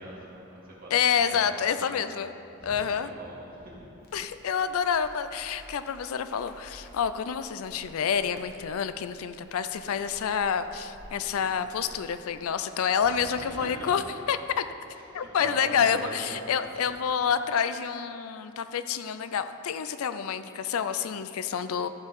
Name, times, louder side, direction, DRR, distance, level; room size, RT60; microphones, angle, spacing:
voice 1, 0.0-0.9 1.3-2.0 2.6-3.9 11.0-11.3 13.2-14.0 14.9-16.9, equal, 45° right, -5 dB, 2.0 m, -42 dB
voice 2, 0.9-2.3 2.6-3.1 4.1-14.0 14.3-14.6 15.1-21.9, left 7 dB, 75° left, 11 dB, 0.4 m, -28 dB
Crackle, 4.0-12.6, equal, 45° left, 1.2 m, -52 dB
13.5 x 4.5 x 5.3 m, 3.0 s
head